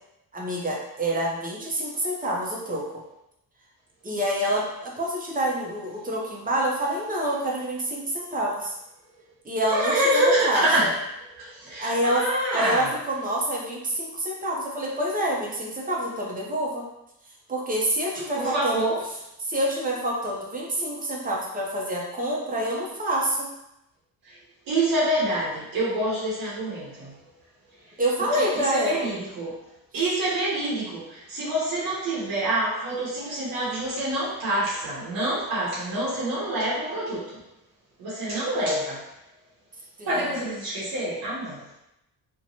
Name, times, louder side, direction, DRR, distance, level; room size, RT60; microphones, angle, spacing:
voice 1, 0.3-3.0 4.0-8.7 9.4-10.9 11.8-12.2 12.5-16.9 17.5-18.9 19.4-23.5 28.0-29.1 40.0-40.1, right 1 dB, 25° right, -2 dB, 0.6 m, -27 dB
voice 2, 9.7-11.0 11.4-13.0 18.3-19.1 24.2-24.4 24.7-27.2 27.8-37.4 38.0-39.1 40.0-41.8, right 1 dB, 70° right, -7 dB, 0.8 m, -27 dB
2.8 x 2.2 x 2.7 m, 0.87 s
cardioid pair, 115°, 38 cm